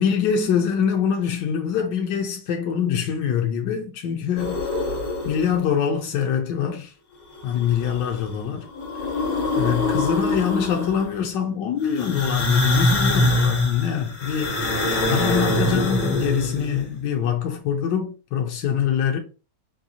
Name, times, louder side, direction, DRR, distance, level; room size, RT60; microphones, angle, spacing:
voice 1, 0.0-4.6 5.2-6.9 7.4-8.7 9.6-14.6 15.1-19.2, left 8 dB, 75° left, 1.3 m, -24 dB
sound 1, 4.4-5.6 7.4-8.3 8.6-11.2 11.9-16.8, left 1 dB, 60° left, 1.4 m, -24 dB
5.4 x 2.6 x 2.8 m
omnidirectional pair, 1.9 m